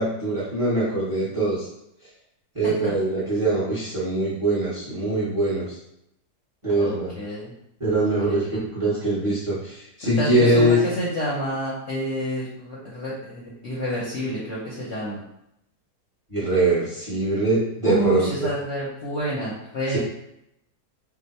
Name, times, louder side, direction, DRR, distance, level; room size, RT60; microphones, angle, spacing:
voice 1, 0.0-1.7 2.5-5.8 6.6-7.1 7.8-10.8 16.3-18.5 19.9-20.0, right 1 dB, 25° right, -8 dB, 0.8 m, -23 dB
voice 2, 2.6-2.9 6.8-7.5 8.0-8.4 10.0-15.2 17.8-20.0, equal, 60° left, -6 dB, 0.8 m, -29 dB
2.8 x 2.0 x 4.0 m, 0.78 s
omnidirectional pair, 1.8 m